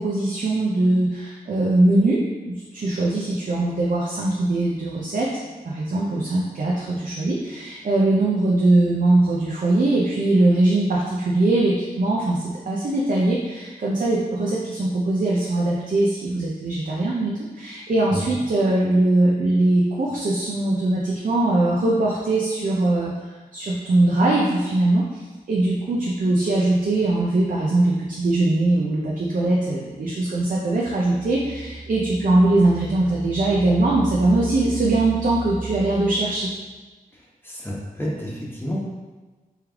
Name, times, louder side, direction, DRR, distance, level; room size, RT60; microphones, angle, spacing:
voice 1, 0.0-5.3 5.6-23.1 23.5-36.5, right 2 dB, 60° right, -4 dB, 0.6 m, -21 dB
voice 2, 37.1-38.9, equal, 15° left, -5 dB, 1.1 m, -30 dB
3.4 x 3.1 x 3.5 m, 1.3 s
cardioid pair, 65°, 16 cm